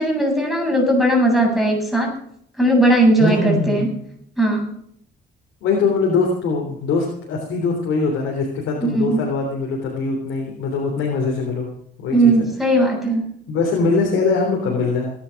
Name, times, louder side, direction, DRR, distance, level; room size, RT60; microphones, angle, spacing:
voice 1, 0.0-2.1 2.6-3.9 4.4-4.7 8.8-9.2 12.1-13.2, right 1 dB, ahead, 0 dB, 8.0 m, -18 dB
voice 2, 3.2-3.9 5.6-11.7 12.0-12.5 13.5-15.1, left 4 dB, 90° left, 0 dB, 3.5 m, -22 dB
18.5 x 10.5 x 5.9 m, 0.66 s
cardioid pair, 90°, 20 cm